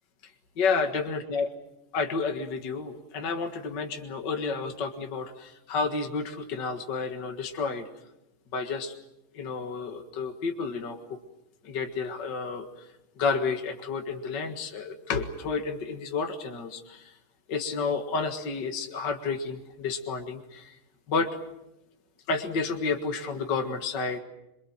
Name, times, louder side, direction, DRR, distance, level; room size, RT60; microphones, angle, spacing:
voice 1, 0.6-1.5 1.9-7.9 8.5-8.9 9.3-11.0 11.6-12.9 13.2-17.2 17.5-20.8 21.1-21.3 22.3-24.2, left 4 dB, 55° left, 5 dB, 2.4 m, -30 dB
27.0 x 24.5 x 7.6 m, 0.90 s
omnidirectional pair, 2.4 m